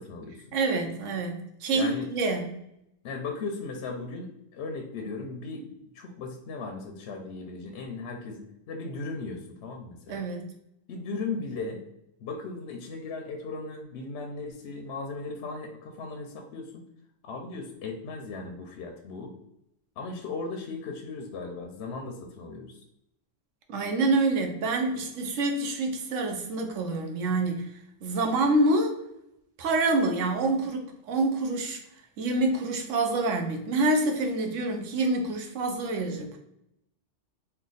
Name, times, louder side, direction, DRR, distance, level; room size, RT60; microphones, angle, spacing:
voice 1, 0.0-0.4 1.7-2.1 3.0-10.2 10.9-11.8 12.2-16.8 17.2-19.3 20.0-22.8, left 3 dB, 65° left, 3 dB, 0.8 m, -37 dB
voice 2, 0.5-2.6 10.1-10.5 23.7-27.7 28.0-29.0 29.6-31.8 32.2-36.4, right 2 dB, 80° right, 4 dB, 1.0 m, -27 dB
3.2 x 2.2 x 3.9 m, 0.80 s
omnidirectional pair, 1.3 m